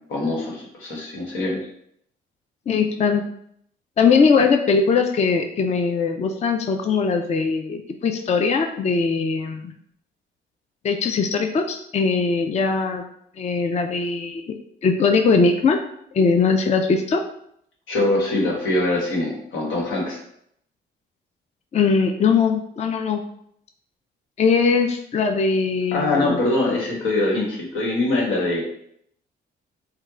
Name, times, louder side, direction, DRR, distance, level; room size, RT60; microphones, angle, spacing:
voice 1, 0.1-1.6 17.9-20.2 25.9-28.6, left 2 dB, 90° left, -2 dB, 1.3 m, -23 dB
voice 2, 2.7-3.2 4.0-9.7 10.8-13.0 13.4-15.8 16.1-17.2 21.7-23.2 24.4-26.4, left 5 dB, 35° left, 4 dB, 0.4 m, -20 dB
4.4 x 2.2 x 3.6 m, 0.70 s
cardioid pair, 90°, 20 cm